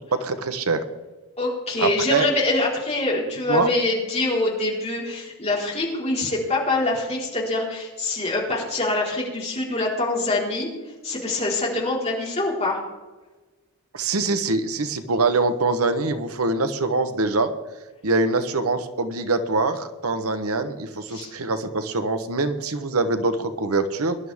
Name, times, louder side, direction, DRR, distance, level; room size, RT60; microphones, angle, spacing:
voice 1, 0.1-0.8 1.8-2.2 3.5-3.7 13.9-17.5 18.0-24.2, right 3 dB, 90° right, 10 dB, 1.2 m, -24 dB
voice 2, 1.4-10.7 11.0-12.8 21.1-21.3, left 2 dB, 30° left, -4 dB, 4.3 m, -24 dB
22.0 x 11.5 x 3.6 m, 1.2 s
head